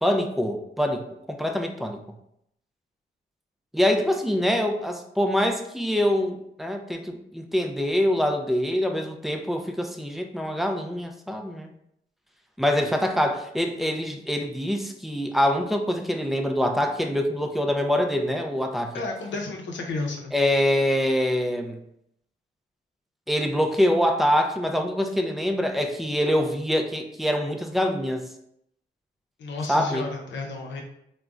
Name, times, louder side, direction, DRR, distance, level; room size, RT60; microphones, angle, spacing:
voice 1, 0.0-2.0 3.7-11.7 12.6-18.9 20.3-21.8 23.3-28.3 29.7-30.1, equal, ahead, 3 dB, 0.4 m, -25 dB
voice 2, 18.9-20.3 29.4-30.8, left 3 dB, 75° left, 2 dB, 0.6 m, -32 dB
3.4 x 2.1 x 2.4 m, 0.75 s
cardioid pair, 70°, 19 cm